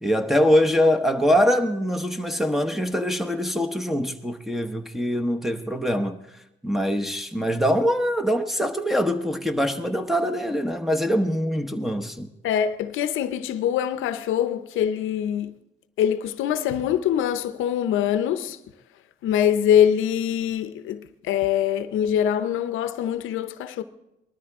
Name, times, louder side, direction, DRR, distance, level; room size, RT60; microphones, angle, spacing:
voice 1, 0.0-6.2 6.6-12.3, equal, ahead, 1.0 m, -23 dB
voice 2, 12.4-15.5 16.0-18.6 19.2-21.0 21.3-23.8, left 9 dB, 85° left, 0.7 m, -23 dB
19.5 x 13.0 x 3.6 m
cardioid pair, 90°, 20 cm